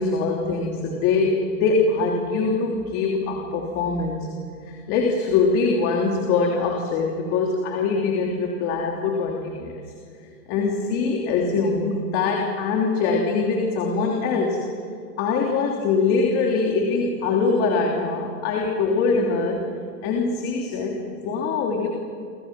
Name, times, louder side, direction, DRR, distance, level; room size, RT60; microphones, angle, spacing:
voice 1, 0.0-4.3 4.7-9.8 10.5-14.6 15.2-19.7 20.0-21.9, left 4 dB, 30° left, 0 dB, 3.3 m, -23 dB
29.5 x 26.5 x 6.0 m, 2.3 s
hypercardioid pair, 155°, 45 cm